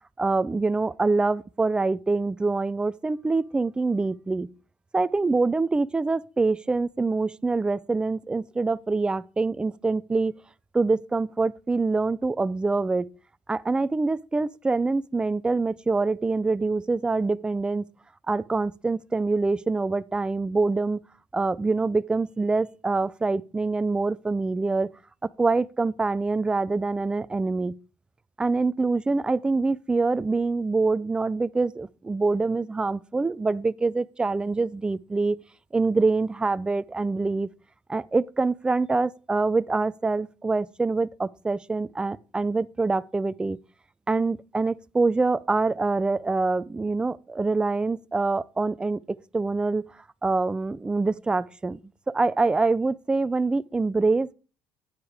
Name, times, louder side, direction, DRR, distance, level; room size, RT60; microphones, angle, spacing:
voice 1, 0.2-4.5 4.9-10.4 10.7-13.1 13.5-17.8 18.3-21.0 21.3-24.9 25.2-27.7 28.4-35.4 35.7-37.5 37.9-43.6 44.1-49.9 50.2-51.8 52.1-54.3, right 3 dB, 10° right, 0.3 m, -25 dB
9.7 x 9.5 x 3.4 m
cardioid pair, 130°, 8 cm